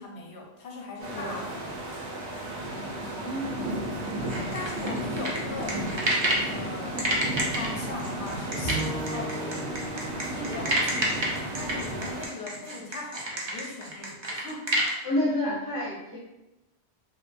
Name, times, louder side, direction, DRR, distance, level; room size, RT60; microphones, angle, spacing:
voice 1, 0.0-1.9 4.5-5.8 6.4-7.2 7.5-9.7 10.2-14.7, left 3 dB, 85° left, -1 dB, 0.9 m, -39 dB
sound 1, 1.0-12.3, right 1 dB, 85° right, 0.9 m, -34 dB
voice 2, 3.1-4.1 15.0-16.2, left 1 dB, 30° left, -8 dB, 0.4 m, -30 dB
sound 2, 4.3-6.5 7.0-14.9, right 1 dB, 50° right, 0.3 m, -29 dB
Bowed string instrument, 8.6-11.9, right 1 dB, 20° right, 0.7 m, -38 dB
2.5 x 2.2 x 2.5 m, 1.0 s
omnidirectional pair, 1.1 m